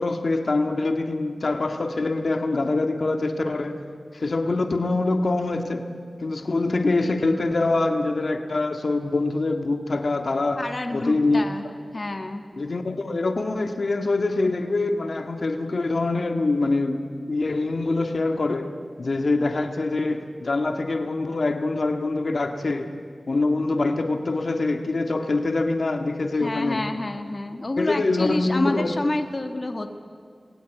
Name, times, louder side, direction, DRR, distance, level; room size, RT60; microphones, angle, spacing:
voice 1, 0.0-3.8 4.1-5.8 6.2-10.6 10.9-11.4 12.6-17.0 17.3-18.7 19.0-22.9 23.3-26.8 27.8-28.9, left 2 dB, 65° left, 5 dB, 1.8 m, -24 dB
voice 2, 10.5-11.6 11.9-12.4 26.4-29.9, left 2 dB, 40° left, 5 dB, 1.7 m, -28 dB
28.0 x 20.5 x 9.3 m, 2.1 s
wide cardioid pair, 70°, 0 cm